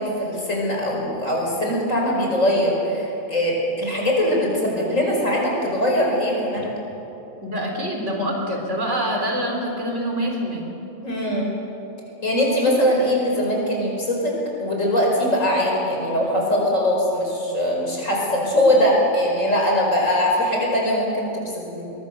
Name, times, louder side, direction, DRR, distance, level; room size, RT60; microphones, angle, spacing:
voice 1, 0.0-6.7 11.0-11.5 12.2-21.8, left 1 dB, 65° left, -2 dB, 5.5 m, -21 dB
voice 2, 7.4-10.6, equal, 55° right, 0 dB, 4.0 m, -25 dB
23.0 x 22.0 x 6.8 m, 3.0 s
omnidirectional pair, 1.5 m